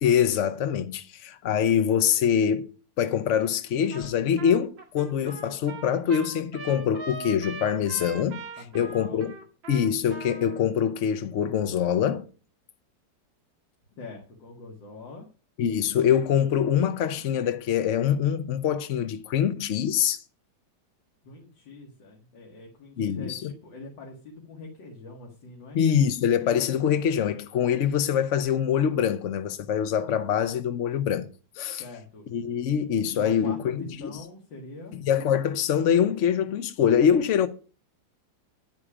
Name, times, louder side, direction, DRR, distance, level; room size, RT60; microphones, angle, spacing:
voice 1, 0.0-2.7 3.0-8.4 8.7-9.3 9.7-12.3 15.6-20.2 23.0-23.5 25.7-31.3 31.5-31.8 32.3-33.8 34.9-37.5, left 8 dB, 60° left, 0.8 m, -24 dB
Trumpet, 3.9-4.1 4.4-10.6, right 3 dB, 85° right, 2.8 m, -41 dB
voice 2, 8.6-9.3 14.0-15.3 21.2-25.8 31.8-32.3 33.1-35.0, left 3 dB, 90° left, 2.5 m, -43 dB
10.0 x 9.5 x 4.9 m
omnidirectional pair, 2.0 m